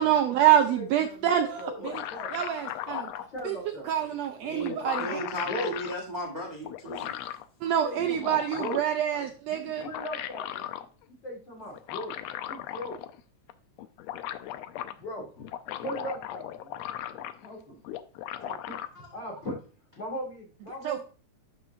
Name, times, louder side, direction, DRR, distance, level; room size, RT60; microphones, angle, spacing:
voice 1, 0.0-1.9 2.3-3.1 3.4-3.6 3.9-5.2 7.6-9.8 20.8-21.0, right 10 dB, 85° right, 6 dB, 1.5 m, -26 dB
voice 2, 0.7-2.4 3.0-4.2 4.5-5.7 7.6-8.8 9.1-12.1 12.5-13.0 14.7-15.5 15.8-17.8 18.4-19.6 20.0-21.0, equal, 40° left, -1 dB, 2.5 m, -39 dB
sound 1, 1.6-3.3 4.2-4.3 4.6-5.9 6.6-7.4 8.0-9.0 9.7-10.8 11.7-13.2 13.5-13.6 13.8-14.9 15.4-17.5 17.8-18.9, left 12 dB, 85° left, 1.5 m, -37 dB
voice 3, 4.4-7.1 18.9-19.1, equal, 25° right, -1 dB, 0.9 m, -36 dB
12.0 x 4.4 x 2.6 m, 0.38 s
omnidirectional pair, 3.5 m